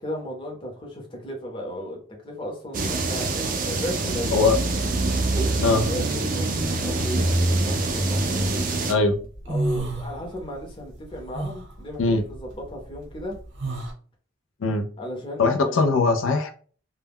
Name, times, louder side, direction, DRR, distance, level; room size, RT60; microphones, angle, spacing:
voice 1, 0.0-4.5 4.9-8.9 9.5-13.4 15.0-15.8, equal, 25° left, 0 dB, 0.7 m, -35 dB
sound 1, 2.7-8.9, right 2 dB, 40° right, 0.4 m, -24 dB
sound 2, 7.9-8.7 9.1-10.6 10.9-13.9, right 2 dB, 60° right, 0.8 m, -31 dB
voice 2, 15.4-16.5, left 3 dB, 80° left, 5 dB, 0.4 m, -20 dB
2.1 x 2.1 x 3.4 m, 0.41 s
head